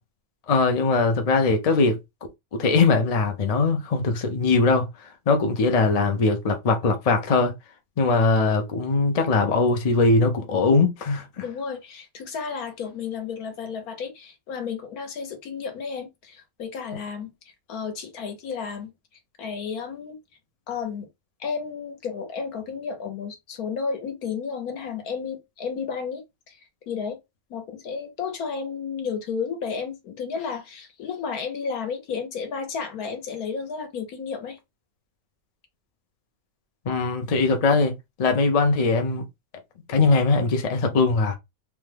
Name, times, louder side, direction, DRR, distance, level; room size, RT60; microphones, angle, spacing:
voice 1, 0.5-2.0 2.5-4.9 5.3-7.5 8.0-11.4 36.9-37.9 38.2-39.2 39.9-41.4, left 3 dB, 60° left, 0.4 m, -21 dB
voice 2, 11.4-17.3 17.7-18.9 19.4-20.2 20.7-21.1 21.4-26.6 26.9-27.2 27.5-34.6, left 6 dB, 80° left, 1.4 m, -32 dB
3.1 x 2.3 x 3.3 m
omnidirectional pair, 1.6 m